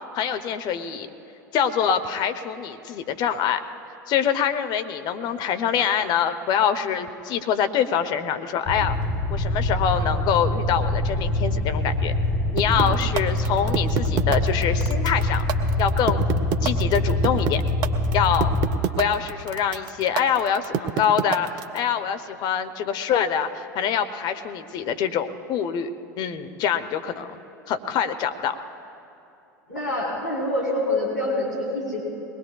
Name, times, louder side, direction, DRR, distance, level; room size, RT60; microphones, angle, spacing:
voice 1, 0.1-1.1 1.5-3.6 4.1-9.0 9.3-12.1 12.5-15.5 15.8-16.2 16.6-17.6 18.1-18.5 19.0-21.5 21.7-25.9 26.2-27.4 27.7-28.6, left 8 dB, 45° left, 9 dB, 0.9 m, -25 dB
sound 1, 8.7-18.7, left 1 dB, 30° left, 3.3 m, -24 dB
sound 2, 12.6-21.8, right 8 dB, 50° right, 0.8 m, -26 dB
voice 2, 29.7-32.0, left 1 dB, 85° left, -5 dB, 4.1 m, -26 dB
22.5 x 19.5 x 2.4 m, 2.9 s
figure-of-eight pair, 80°, 10 cm